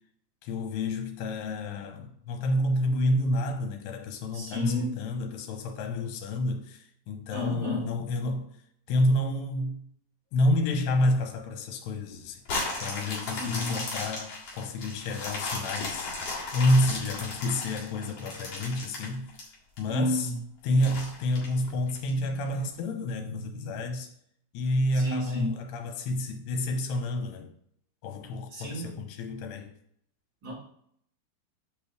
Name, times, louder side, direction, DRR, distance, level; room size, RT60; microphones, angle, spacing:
voice 1, 0.4-8.5 8.9-9.8 10.3-12.4 12.8-16.1 16.5-19.3 19.8-20.3 20.6-24.1 24.5-27.5 28.0-29.7, left 1 dB, 80° left, 2.9 m, -29 dB
voice 2, 4.3-5.0 7.3-7.9 13.2-13.8 19.9-20.4 24.9-25.5 28.5-29.0 30.4-30.5, left 1 dB, 35° right, 3.1 m, -31 dB
sound 1, 12.4-19.8 20.3-20.4 20.8-22.1 22.6-22.7, left 3 dB, 45° left, 2.3 m, -35 dB
8.2 x 5.4 x 3.2 m
omnidirectional pair, 4.9 m